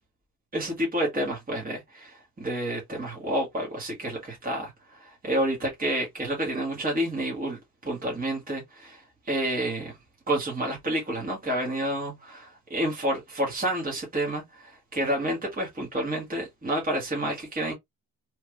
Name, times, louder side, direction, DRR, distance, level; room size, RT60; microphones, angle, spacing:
voice 1, 0.5-9.0 9.3-9.9 10.3-17.7, right 1 dB, 25° right, 1.4 m, -29 dB
3.2 x 2.5 x 3.1 m
cardioid pair, 110°, 38 cm